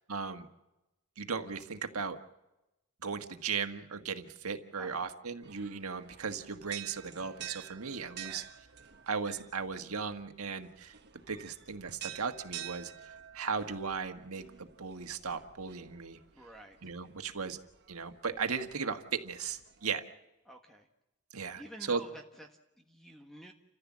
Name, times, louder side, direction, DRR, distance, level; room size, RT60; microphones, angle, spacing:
voice 1, 0.1-0.5 1.2-2.2 3.0-8.4 9.1-10.9 11.3-12.9 13.3-16.2 16.8-17.6 17.9-20.0 21.3-21.6 21.9-22.0, right 5 dB, 90° right, 7 dB, 1.6 m, -36 dB
voice 2, 4.8-5.1 8.2-8.5 16.3-16.8 20.4-20.9 21.6-23.5, right 1 dB, ahead, 3 dB, 1.5 m, -51 dB
sound 1, 5.4-19.9, right 11 dB, 55° right, 1.4 m, -50 dB
29.0 x 15.0 x 7.4 m, 0.96 s
head